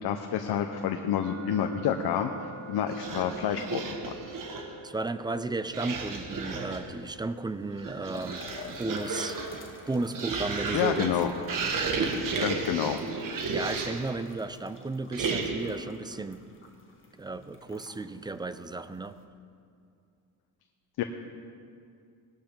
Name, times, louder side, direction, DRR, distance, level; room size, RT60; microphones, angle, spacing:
voice 1, 0.0-4.1 10.7-11.3 12.4-13.0 21.0-21.1, left 8 dB, 70° left, 5 dB, 0.9 m, -29 dB
sound 1, 1.2-14.1, right 3 dB, 25° right, 1.9 m, -51 dB
sound 2, 2.9-4.8 5.7-6.9 7.6-14.1 15.1-15.8, right 4 dB, 55° right, 1.8 m, -33 dB
voice 2, 4.8-8.5 8.8-9.4 9.9-11.1 12.3-12.5 13.5-16.4 17.2-19.2, right 3 dB, 10° right, 12 dB, 0.4 m, -34 dB
pouring water, 6.3-19.3, left 3 dB, 30° left, 1.6 m, -51 dB
20.0 x 11.5 x 3.8 m, 2.4 s
cardioid pair, 120°, 40 cm